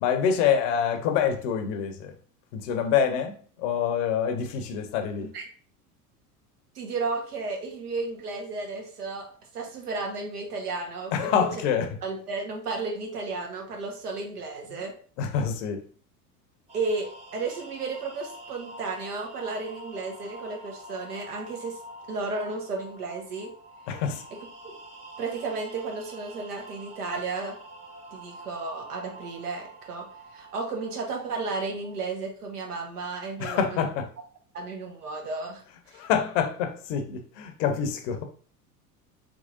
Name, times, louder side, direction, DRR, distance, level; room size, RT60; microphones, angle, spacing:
voice 1, 0.0-2.1 2.5-5.3 11.1-11.9 15.2-15.8 23.9-24.2 33.4-34.1 35.9-38.2, left 7 dB, 50° left, 0.7 m, -26 dB
voice 2, 6.7-11.3 12.0-14.9 16.7-21.8 22.1-23.5 25.2-27.6 28.1-33.9 34.5-35.6 35.9-36.0, right 3 dB, 75° right, 1.1 m, -33 dB
sound 1, 16.7-32.0, right 1 dB, 15° right, 0.6 m, -46 dB
3.7 x 3.0 x 2.5 m
figure-of-eight pair, 75°, 47 cm